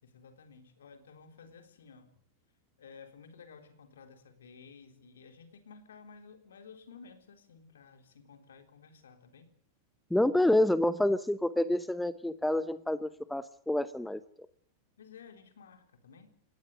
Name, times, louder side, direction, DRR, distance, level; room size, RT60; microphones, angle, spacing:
voice 1, 0.0-2.1 2.8-9.5 15.0-16.3, left 5 dB, 65° left, 6 dB, 3.8 m, -54 dB
voice 2, 10.1-14.2, left 1 dB, 5° left, 14 dB, 1.0 m, -28 dB
29.0 x 17.5 x 6.6 m, 0.64 s
figure-of-eight pair, 90°, 0 cm